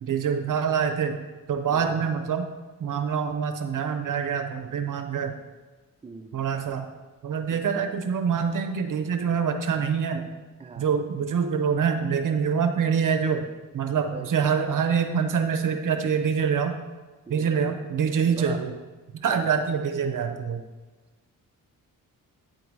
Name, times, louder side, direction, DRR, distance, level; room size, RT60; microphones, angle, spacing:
voice 1, 0.0-1.2 1.5-2.5 2.8-5.3 6.3-6.9 7.2-10.2 10.8-13.5 13.7-16.8 17.3-18.7 19.2-20.6, right 6 dB, 65° right, 7 dB, 0.8 m, -25 dB
voice 2, 1.7-2.1 6.0-6.5 7.5-7.9 10.6-11.0 14.1-14.3 17.3-18.6 19.3-19.5, right 4 dB, 15° right, 5 dB, 0.5 m, -42 dB
9.1 x 3.9 x 4.6 m, 1.3 s
cardioid pair, 75°, 34 cm